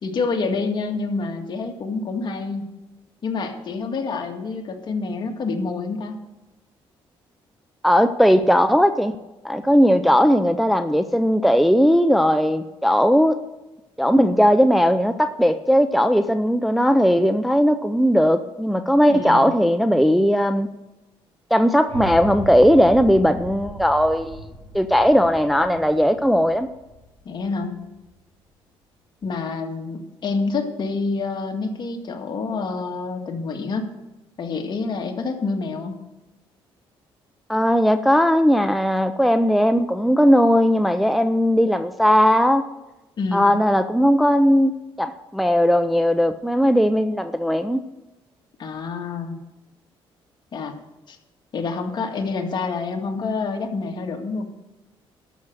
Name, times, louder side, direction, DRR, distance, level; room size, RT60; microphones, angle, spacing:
voice 1, 0.0-2.7 3.2-6.2 19.1-19.5 27.3-27.8 29.2-33.9 34.4-36.0 43.2-43.5 48.6-49.4 50.5-50.7 51.1-51.2 51.5-54.5, left 4 dB, 50° left, 3 dB, 1.9 m, -27 dB
voice 2, 7.8-9.2 9.4-13.4 14.0-20.7 21.5-26.7 37.5-42.6 43.3-44.7 45.0-47.8, equal, ahead, 8 dB, 0.5 m, -18 dB
sound 1, 21.9-28.1, right 1 dB, 70° right, 4.6 m, -38 dB
13.0 x 6.5 x 6.4 m, 1.0 s
cardioid pair, 105°, 10 cm